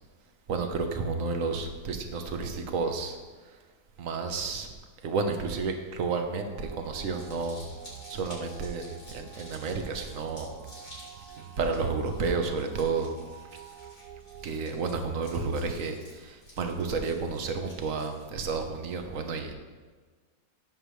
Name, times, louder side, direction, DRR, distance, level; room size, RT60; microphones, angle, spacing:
voice 1, 0.5-3.2 4.0-4.7 5.0-7.6 8.1-10.5 11.6-13.2 14.4-19.5, right 4 dB, 60° right, 5 dB, 1.4 m, -31 dB
sound 1, 6.5-14.5, right 8 dB, 75° right, 1.3 m, -47 dB
Crumpling crinkling, 6.8-18.6, left 1 dB, 55° left, 4.4 m, -52 dB
16.0 x 7.5 x 3.2 m, 1.4 s
omnidirectional pair, 1.7 m